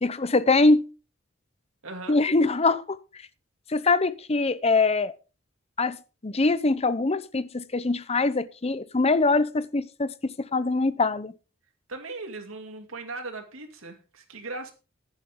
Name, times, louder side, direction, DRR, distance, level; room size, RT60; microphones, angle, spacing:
voice 1, 0.0-0.9 2.1-3.0 3.7-5.1 5.8-6.0 6.2-11.3, left 3 dB, 30° left, 0.7 m, -23 dB
voice 2, 1.8-2.2 11.9-14.7, right 3 dB, 85° right, 2.6 m, -38 dB
10.5 x 10.5 x 3.7 m
head